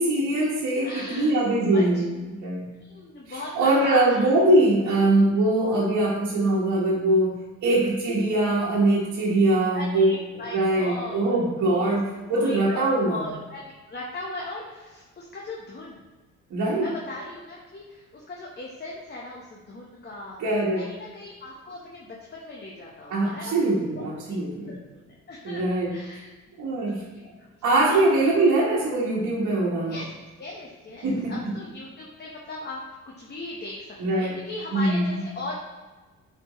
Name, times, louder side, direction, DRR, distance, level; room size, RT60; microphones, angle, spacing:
voice 1, 0.0-2.1 2.4-2.7 3.3-10.1 10.5-13.2 16.5-16.9 20.4-20.9 23.1-24.8 25.4-25.9 26.6-27.0 27.6-30.0 31.0-31.6 34.0-34.4 34.7-35.1, right 2 dB, 70° right, -7 dB, 1.4 m, -22 dB
voice 2, 0.8-1.4 1.7-1.8 2.7-4.3 9.7-11.4 11.7-11.9 12.4-12.8 13.1-16.0 16.8-20.4 20.7-23.7 24.0-24.4 24.7-25.0 25.3-26.3 26.7-27.5 27.9-28.0 29.9-30.1 30.4-32.8 33.2-35.5, left 2 dB, 35° left, -3 dB, 1.1 m, -38 dB
7.5 x 4.6 x 3.1 m, 1.2 s
cardioid pair, 90°, 30 cm